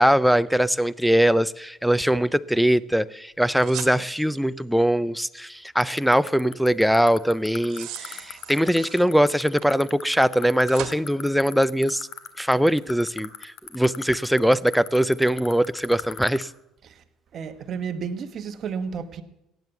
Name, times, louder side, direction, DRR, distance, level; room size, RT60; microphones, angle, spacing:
voice 1, 0.0-12.1 12.4-16.5, equal, ahead, 0.4 m, -21 dB
sound 1, 3.6-4.6 7.4-9.2 9.6-9.7 10.7-11.0, right 12 dB, 70° right, 1.6 m, -39 dB
sound 2, 5.8-16.4, left 12 dB, 70° left, 1.8 m, -34 dB
voice 2, 17.3-19.2, right 6 dB, 45° right, 1.2 m, -32 dB
16.0 x 9.3 x 7.0 m
cardioid pair, 125°, 0 cm